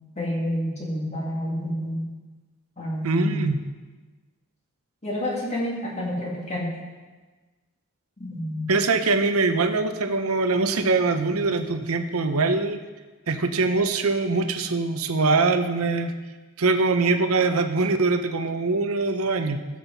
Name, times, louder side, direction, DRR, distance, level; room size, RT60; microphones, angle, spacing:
voice 1, 0.2-2.0 2.8-3.5 5.0-6.7 8.2-8.7, equal, 30° left, -4 dB, 2.3 m, -28 dB
voice 2, 3.0-3.6 8.7-12.8 13.3-16.1 16.6-19.6, right 3 dB, 75° right, 8 dB, 0.8 m, -23 dB
14.0 x 7.7 x 4.1 m, 1.3 s
head